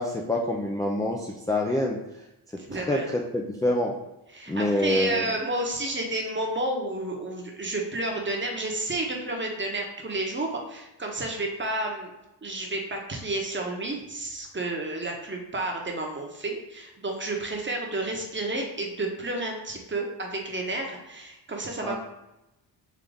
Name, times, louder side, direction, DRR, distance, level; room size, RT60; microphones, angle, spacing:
voice 1, 0.0-2.0 2.7-3.9 4.5-5.2 21.8-22.0, left 1 dB, 10° left, 0 dB, 0.4 m, -26 dB
voice 2, 2.6-3.1 4.3-12.1 12.4-22.0, right 2 dB, 25° right, 1 dB, 1.0 m, -31 dB
3.8 x 2.9 x 3.5 m, 0.94 s
cardioid pair, 65°, 47 cm